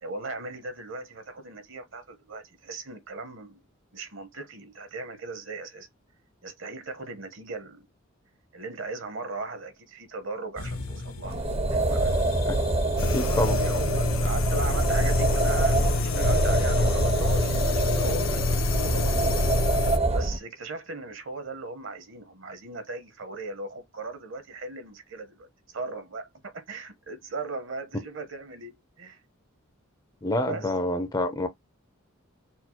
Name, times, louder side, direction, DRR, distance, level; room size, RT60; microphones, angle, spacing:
voice 1, 0.0-3.6 3.9-5.9 6.4-7.9 8.5-11.4 11.7-12.1 13.1-19.5 20.1-25.5 25.7-29.2 30.4-30.8, right 3 dB, 60° right, 1.0 m, -38 dB
sound 1, 10.6-17.5, left 2 dB, 90° left, 1.4 m, -42 dB
sound 2, 11.2-20.4, right 2 dB, 30° right, 0.6 m, -26 dB
sound 3, 13.0-20.0, left 3 dB, 70° left, 0.7 m, -27 dB
voice 2, 13.1-13.6 18.8-18.9 30.2-31.5, left 1 dB, 20° left, 0.5 m, -27 dB
4.4 x 2.1 x 4.3 m
head